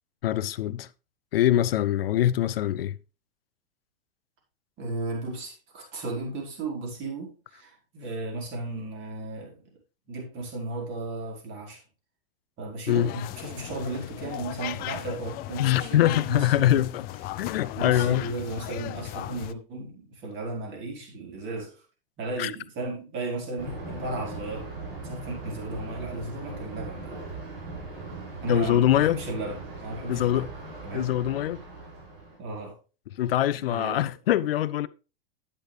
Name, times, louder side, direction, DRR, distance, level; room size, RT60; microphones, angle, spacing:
voice 1, 0.2-0.9 1.3-3.0 12.9-13.1 15.6-17.1 17.4-18.2 22.4-22.5 28.5-29.2 30.1-30.5 30.9-31.6 33.2-34.9, left 12 dB, 80° left, 0.6 m, -23 dB
voice 2, 4.8-9.6 10.1-11.8 12.6-16.8 17.4-21.8 22.2-24.7 25.1-27.2 28.4-30.4 30.8-31.1 32.4-32.8 33.6-34.1, right 2 dB, 40° right, 4.8 m, -35 dB
sound 1, 12.9-19.5, left 15 dB, 30° left, 0.5 m, -37 dB
Thunder, 23.6-32.4, right 3 dB, 75° right, 5.0 m, -39 dB
10.0 x 8.2 x 3.4 m
hypercardioid pair, 115°, 29 cm